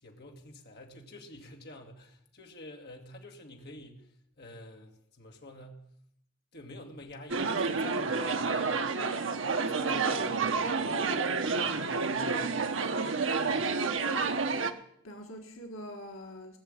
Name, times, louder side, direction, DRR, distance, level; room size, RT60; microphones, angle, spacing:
voice 1, 0.0-4.1 4.4-5.8 6.5-9.2 9.6-11.1 11.4-12.7 13.0-13.8, left 1 dB, 50° left, 2 dB, 2.0 m, -48 dB
sound 1, 7.3-14.7, right 4 dB, 65° right, 1.0 m, -29 dB
voice 2, 13.4-14.6 15.0-16.6, left 1 dB, 75° left, 3 dB, 1.7 m, -44 dB
17.0 x 6.9 x 8.8 m, 0.72 s
head